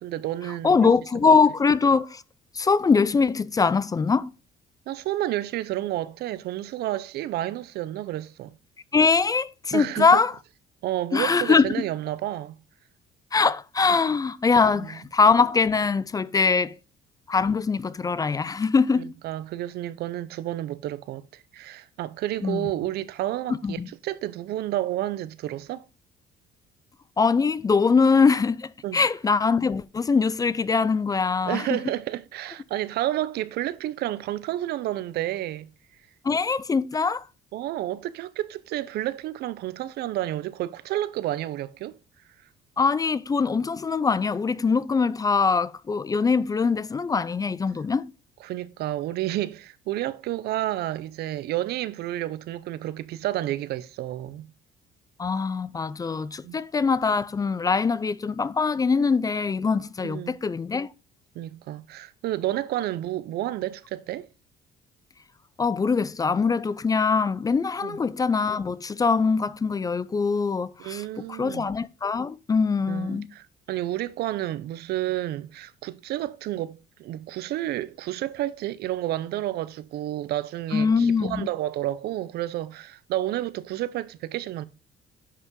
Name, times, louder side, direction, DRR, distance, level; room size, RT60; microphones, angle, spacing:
voice 1, 0.0-0.9 1.3-1.4 4.9-8.5 9.7-10.2 10.8-12.6 14.7-15.0 18.9-25.8 28.8-29.0 31.5-35.7 37.5-42.0 48.4-54.5 56.4-56.6 60.0-60.4 61.3-64.3 67.8-68.0 70.8-71.7 72.9-84.6, right 14 dB, 70° right, 0.6 m, -30 dB
voice 2, 0.6-2.2 2.5-4.3 8.9-10.3 11.1-11.7 13.3-16.8 17.3-19.1 22.4-22.7 23.6-23.9 27.2-31.7 36.2-37.2 42.8-48.1 55.2-60.9 65.6-71.0 71.3-73.3 80.7-81.5, left 5 dB, 20° left, 0.4 m, -22 dB
9.6 x 5.6 x 3.8 m
cardioid pair, 110°, 17 cm